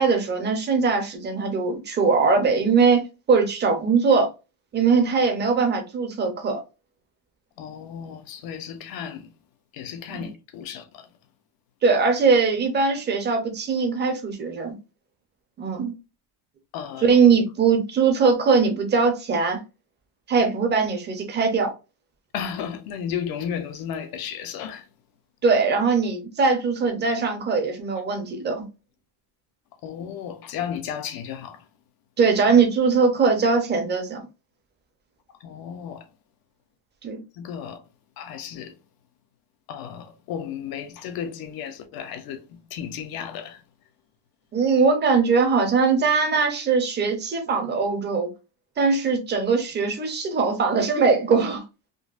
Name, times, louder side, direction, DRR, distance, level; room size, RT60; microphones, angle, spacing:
voice 1, 0.0-3.0 3.3-4.3 4.7-6.6 10.1-10.2 11.8-14.7 15.6-15.9 17.0-19.6 20.3-21.7 25.4-28.6 32.2-34.3 37.0-37.2 44.5-48.3 48.8-51.6, right 5 dB, 25° right, 0.7 m, -21 dB
voice 2, 7.6-9.3 9.7-11.1 16.7-17.1 22.3-24.9 29.8-31.7 35.4-36.1 37.3-37.8 38.2-38.8 39.7-43.6, left 8 dB, 50° left, 0.7 m, -34 dB
3.8 x 2.1 x 2.4 m
cardioid pair, 135°, 46 cm